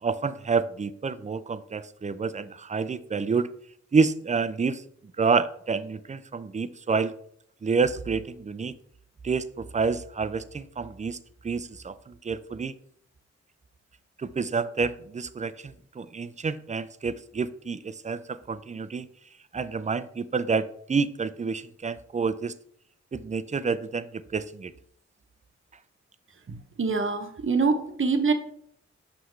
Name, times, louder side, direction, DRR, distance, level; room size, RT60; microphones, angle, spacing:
voice 1, 0.0-3.5 3.9-4.8 5.2-7.1 7.6-8.7 9.2-11.2 11.4-12.8 14.2-19.1 19.5-22.5 23.1-24.7, right 5 dB, 25° right, 13 dB, 0.4 m, -28 dB
voice 2, 26.5-28.3, right 4 dB, 45° right, 6 dB, 0.9 m, -25 dB
5.8 x 5.8 x 3.2 m, 0.66 s
cardioid pair, 45°, 29 cm